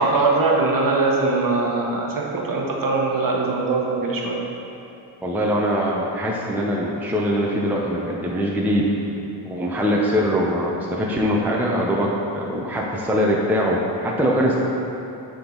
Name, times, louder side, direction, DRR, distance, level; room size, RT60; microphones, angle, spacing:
voice 1, 0.0-4.4, right 3 dB, 40° right, -1 dB, 1.2 m, -21 dB
voice 2, 5.2-8.9 9.4-14.6, equal, 5° right, -3 dB, 0.7 m, -22 dB
9.6 x 3.8 x 3.9 m, 2.8 s
cardioid pair, 75°, 50 cm